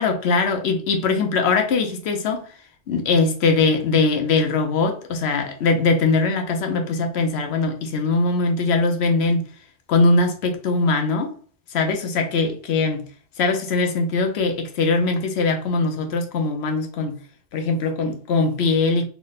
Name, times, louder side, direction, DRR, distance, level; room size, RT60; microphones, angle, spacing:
voice 1, 0.0-2.4 2.9-9.5 9.9-11.3 11.7-13.1 13.4-17.2 17.5-19.1, left 3 dB, 85° left, 0.9 m, -21 dB
3.5 x 2.1 x 3.9 m
omnidirectional pair, 1.1 m